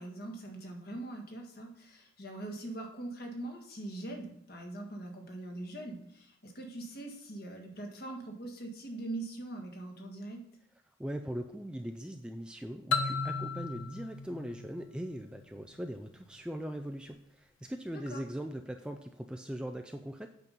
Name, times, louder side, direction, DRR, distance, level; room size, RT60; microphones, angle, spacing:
voice 1, 0.0-10.4 17.9-18.2, right 2 dB, 50° left, 2 dB, 1.6 m, -42 dB
voice 2, 11.0-20.3, equal, 5° right, 4 dB, 0.3 m, -40 dB
sound 1, 12.9-15.6, left 4 dB, 70° left, 0.7 m, -35 dB
8.3 x 5.3 x 5.5 m, 0.74 s
head